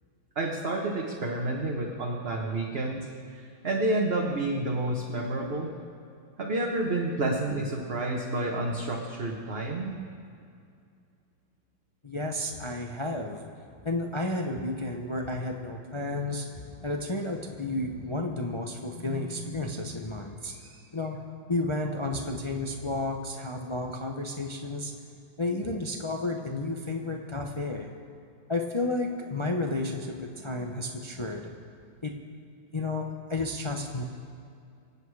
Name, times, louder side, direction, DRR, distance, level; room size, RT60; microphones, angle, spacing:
voice 1, 0.3-5.7 6.4-10.0, right 2 dB, 40° right, -1 dB, 1.2 m, -30 dB
voice 2, 12.0-13.5 13.8-24.9 25.4-27.9 28.5-31.5 32.0-32.2 32.7-34.0, left 2 dB, 35° left, 2 dB, 0.4 m, -32 dB
25.5 x 8.6 x 4.8 m, 2.4 s
omnidirectional pair, 2.0 m